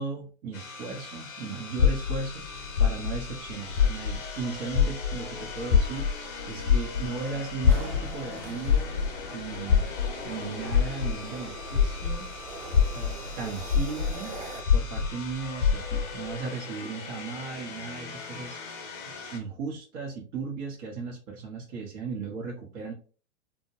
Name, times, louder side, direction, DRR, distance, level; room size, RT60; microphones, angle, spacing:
voice 1, 0.0-2.5 2.8-6.1 6.5-9.0 9.3-9.9 10.2-12.3 12.9-14.3 14.7-18.6 19.0-22.9, right 4 dB, 40° right, -2 dB, 0.7 m, -36 dB
sound 1, 0.5-19.4, left 4 dB, 35° left, 0.8 m, -41 dB
sound 2, 1.8-4.4 4.7-12.3 12.7-16.2, left 7 dB, 60° left, 0.4 m, -25 dB
sound 3, 7.7-14.6, right 3 dB, 70° right, 1.0 m, -43 dB
2.1 x 2.1 x 2.7 m, 0.37 s
hypercardioid pair, 115°, 36 cm